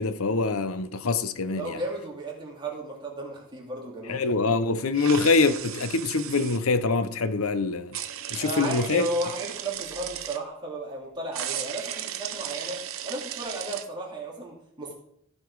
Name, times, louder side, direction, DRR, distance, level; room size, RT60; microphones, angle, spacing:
voice 1, 0.0-1.8 4.1-8.0 8.3-9.1, left 3 dB, 75° left, 0.8 m, -24 dB
voice 2, 1.5-4.3 8.4-14.9, right 1 dB, 20° right, 2.5 m, -34 dB
sound 1, 4.9-6.6 7.9-10.4 11.3-13.9, right 10 dB, 70° right, 0.7 m, -36 dB
15.5 x 5.3 x 4.8 m
head